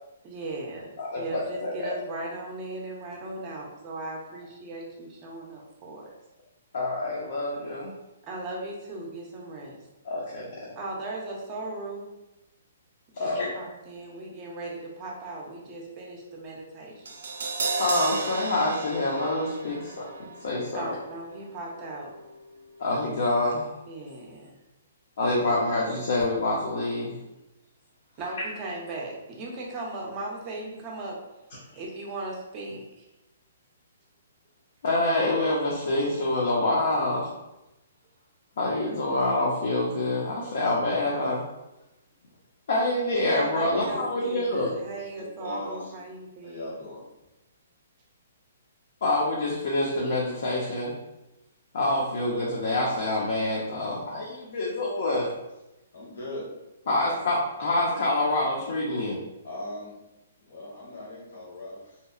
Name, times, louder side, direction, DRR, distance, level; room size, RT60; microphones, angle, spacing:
voice 1, 0.2-6.1 8.2-9.8 10.8-12.1 13.2-17.1 20.7-22.1 23.9-24.5 28.2-31.2 31.7-33.1 43.0-46.7, right 2 dB, 25° right, -1 dB, 0.4 m, -37 dB
voice 2, 1.0-1.9 6.7-7.9 10.0-10.7 13.1-13.7 17.8-20.1 20.4-20.9 22.8-23.7 25.2-27.2 31.7-31.8 34.8-37.4 38.6-41.5 42.7-44.7 49.0-50.9 51.7-55.3 56.9-59.2, left 2 dB, 65° left, -4 dB, 0.5 m, -26 dB
Crash cymbal, 17.1-23.2 23.5-23.6, right 3 dB, 85° right, 0.4 m, -35 dB
voice 3, 43.6-44.0 45.4-46.0 46.4-47.0 54.0-54.2 55.0-55.3 55.9-56.4 59.4-59.9 60.4-62.0, left 2 dB, 85° left, -4 dB, 1.2 m, -37 dB
2.7 x 2.0 x 2.3 m, 0.96 s
hypercardioid pair, 160°, 0 cm